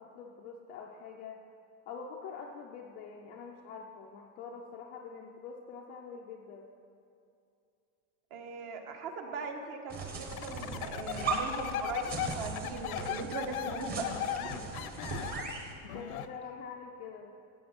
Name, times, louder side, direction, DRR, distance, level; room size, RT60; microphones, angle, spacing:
voice 1, 0.0-1.4 1.9-6.7 14.4-15.2 15.5-15.6 15.9-17.3, left 5 dB, 25° left, 0 dB, 0.3 m, -45 dB
voice 2, 8.3-14.1, right 4 dB, 50° right, 4 dB, 1.5 m, -40 dB
sound 1, 9.9-15.7, right 4 dB, 20° right, 1.1 m, -39 dB
sound 2, 10.3-16.3, left 10 dB, 85° left, 0.7 m, -37 dB
14.5 x 7.9 x 5.8 m, 2.5 s
supercardioid pair, 165°, 42 cm